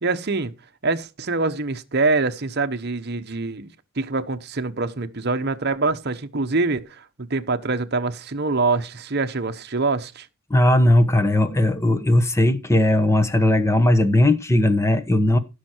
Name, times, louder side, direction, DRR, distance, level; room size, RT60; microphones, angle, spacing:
voice 1, 0.0-0.5 0.8-3.7 4.0-10.3, right 3 dB, 45° right, 0.9 m, -24 dB
voice 2, 10.5-15.4, left 1 dB, 10° left, 1.1 m, -18 dB
15.5 x 6.5 x 4.5 m
head